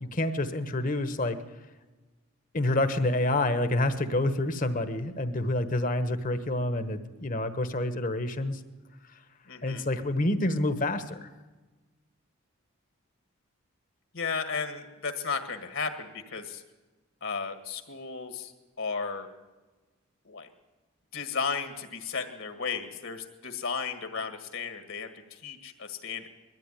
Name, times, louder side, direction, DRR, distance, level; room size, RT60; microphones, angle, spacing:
voice 1, 0.0-1.4 2.5-8.6 9.6-11.3, left 1 dB, 35° left, 10 dB, 1.2 m, -28 dB
voice 2, 9.5-9.9 14.1-16.6 17.2-18.5 18.8-19.3 20.2-20.5 21.1-26.3, left 5 dB, 60° left, 7 dB, 1.9 m, -34 dB
21.5 x 14.0 x 9.9 m, 1.2 s
head